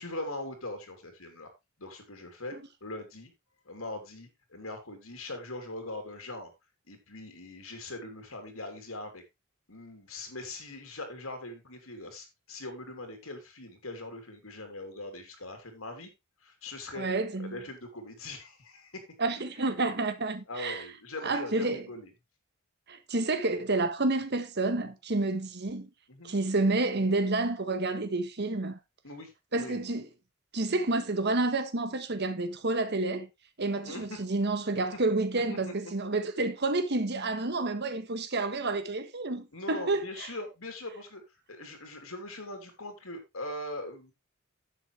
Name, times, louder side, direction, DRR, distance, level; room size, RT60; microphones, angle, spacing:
voice 1, 0.0-1.5 1.8-2.5 2.8-3.3 3.6-6.5 6.9-9.2 9.7-16.1 16.4-17.1 17.4-19.0 20.5-22.1 26.1-26.4 29.0-29.9 33.8-34.2 35.5-35.7 39.5-41.2 41.5-44.1, left 2 dB, 75° left, 3.1 m, -41 dB
voice 2, 17.0-17.6 19.2-20.8 21.2-21.8 22.9-25.9 26.2-28.8 29.5-30.0 30.5-33.3 33.6-40.3, right 2 dB, 50° right, 1.3 m, -29 dB
10.0 x 8.0 x 3.3 m
head